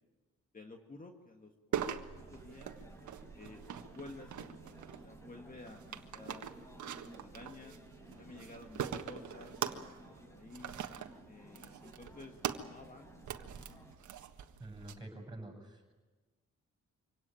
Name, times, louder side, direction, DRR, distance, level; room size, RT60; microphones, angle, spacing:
voice 1, 0.5-2.8 3.3-3.7 3.9-7.7 8.2-10.8 11.3-13.2, left 2 dB, 30° left, 3 dB, 1.9 m, -53 dB
sound 1, 1.7-14.9, right 8 dB, 75° right, 1.5 m, -43 dB
sound 2, 2.1-13.9, right 1 dB, 10° left, 5.3 m, -57 dB
voice 2, 14.6-15.9, right 1 dB, 15° right, 3 dB, 7.2 m, -47 dB
25.0 x 17.5 x 9.2 m, 1.3 s
cardioid pair, 90°, 29 cm